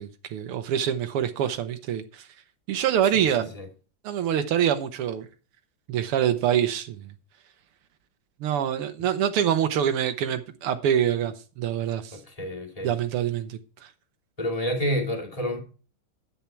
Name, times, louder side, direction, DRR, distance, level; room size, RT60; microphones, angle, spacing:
voice 1, 0.0-2.3 2.7-3.5 4.0-5.3 5.9-7.1 8.4-12.2 12.8-13.9, right 9 dB, 85° right, 1.9 m, -25 dB
voice 2, 12.1-12.9 14.4-15.6, equal, 15° left, 2.7 m, -29 dB
10.5 x 8.6 x 4.5 m
omnidirectional pair, 2.4 m